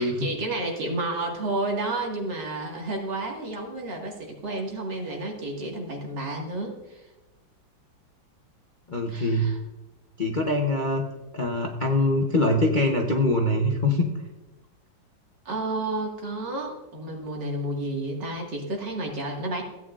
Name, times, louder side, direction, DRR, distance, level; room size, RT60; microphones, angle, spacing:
voice 1, 0.0-7.0 9.1-9.6 15.5-19.6, right 2 dB, 65° right, 0 dB, 2.5 m, -31 dB
voice 2, 8.9-9.5 10.2-11.0 11.3-14.1, left 1 dB, 40° left, 0 dB, 0.7 m, -23 dB
16.0 x 9.0 x 2.5 m, 1.1 s
omnidirectional pair, 2.1 m